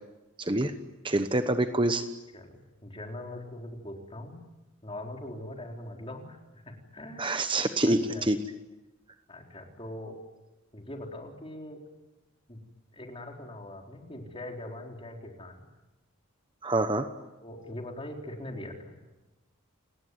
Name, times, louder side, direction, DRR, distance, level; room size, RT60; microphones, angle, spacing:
voice 1, 0.4-0.7 1.0-2.1 7.2-8.4 16.6-17.1, right 2 dB, 25° right, 9 dB, 1.0 m, -26 dB
voice 2, 2.3-4.4 4.8-7.3 7.8-8.2 9.3-10.2 10.7-11.8 12.5-12.6 12.9-15.6 17.4-19.0, left 1 dB, 25° left, 2 dB, 4.0 m, -42 dB
28.5 x 19.5 x 9.5 m, 1.0 s
head